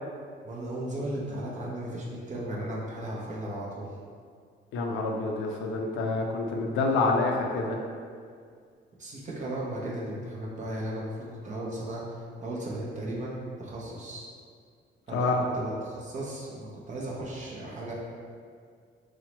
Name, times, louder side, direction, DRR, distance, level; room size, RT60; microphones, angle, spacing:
voice 1, 0.4-3.9 9.0-14.3 15.1-17.9, right 1 dB, 40° right, -5 dB, 0.5 m, -36 dB
voice 2, 4.7-7.8 15.1-15.4, left 3 dB, 80° left, 2 dB, 0.4 m, -27 dB
2.9 x 2.0 x 2.9 m, 2.1 s
cardioid pair, 90°, 20 cm